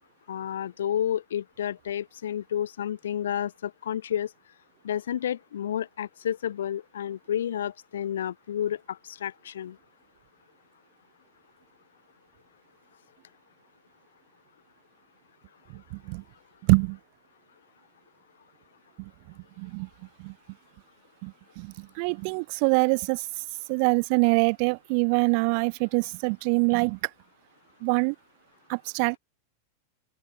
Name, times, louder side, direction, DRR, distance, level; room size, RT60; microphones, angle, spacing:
voice 1, 0.3-4.3 4.8-9.8, left 10 dB, 65° left, 7.5 m, -31 dB
voice 2, 19.6-19.9 20.2-20.3 21.2-23.2 23.7-27.0 27.8-28.1 28.7-29.2, right 39 dB, 45° right, 1.6 m, -24 dB
open air
figure-of-eight pair, 90°, 0 cm